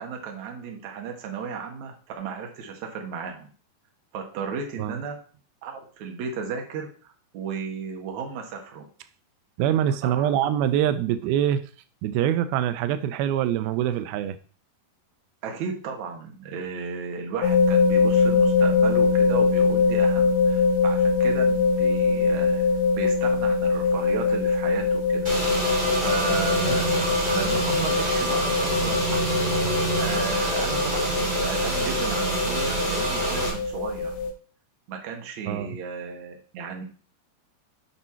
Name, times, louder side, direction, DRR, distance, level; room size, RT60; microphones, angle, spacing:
voice 1, 0.0-3.5 4.1-5.2 5.6-8.9 10.0-10.5 15.4-22.7 23.0-25.3 26.0-34.1 34.9-36.8, right 5 dB, 60° right, 2 dB, 2.4 m, -34 dB
voice 2, 9.6-11.6 12.0-14.4 26.7-26.8 35.5-35.8, right 10 dB, 90° right, 11 dB, 2.5 m, -24 dB
sound 1, 17.4-34.3, left 4 dB, 65° left, 1.9 m, -23 dB
Car / Engine, 25.2-33.5, right 2 dB, 15° right, 3.0 m, -26 dB
8.6 x 5.6 x 4.4 m, 0.41 s
omnidirectional pair, 4.3 m